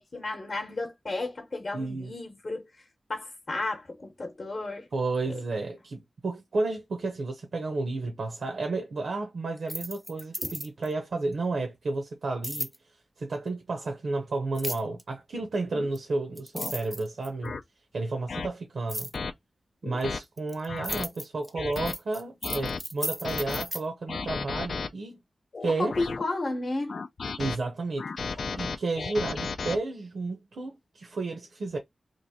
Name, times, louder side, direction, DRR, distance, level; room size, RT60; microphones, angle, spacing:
voice 1, 0.0-2.6 3.1-4.9 10.4-10.5 25.7-27.0, left 2 dB, 45° left, 0.9 m, -33 dB
voice 2, 1.7-2.1 4.9-12.7 13.2-17.6 17.9-19.1 19.8-25.2 25.6-25.9 27.4-28.1 28.6-31.8, right 3 dB, 75° right, 0.8 m, -32 dB
sound 1, 9.6-10.9 12.4-12.8 14.6-15.0 16.0-16.1 16.4-17.5 18.9-19.2 20.0-23.8, equal, 5° right, 0.6 m, -35 dB
sound 2, 15.7-15.9 16.5-16.7 17.4-17.6 18.3-18.5 19.1-19.3 19.8-20.2 20.7-21.1 21.6-21.9 22.4-22.8 23.2-23.6 24.1-24.9 25.5-26.2 26.9-27.6 28.0-29.8, left 4 dB, 60° left, 0.4 m, -33 dB
3.1 x 2.5 x 4.1 m
wide cardioid pair, 120°, 0 cm